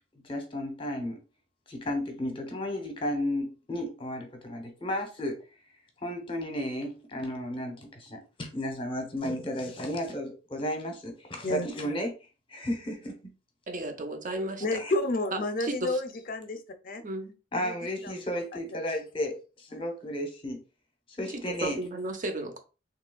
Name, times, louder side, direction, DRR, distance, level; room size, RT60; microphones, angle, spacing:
voice 1, 0.1-1.2 1.7-5.4 6.0-12.1 12.5-13.2 14.8-14.9 17.5-20.6 21.2-21.8, left 1 dB, 25° left, 4 dB, 0.8 m, -33 dB
voice 2, 13.7-14.8 15.3-16.0 17.0-17.3 21.3-22.6, right 2 dB, 45° right, 5 dB, 0.7 m, -34 dB
voice 3, 14.6-17.0 17.6-17.8 18.0-18.2 18.5-18.8 19.7-19.8, left 2 dB, 45° left, 8 dB, 0.5 m, -31 dB
3.4 x 2.9 x 2.3 m, 0.32 s
head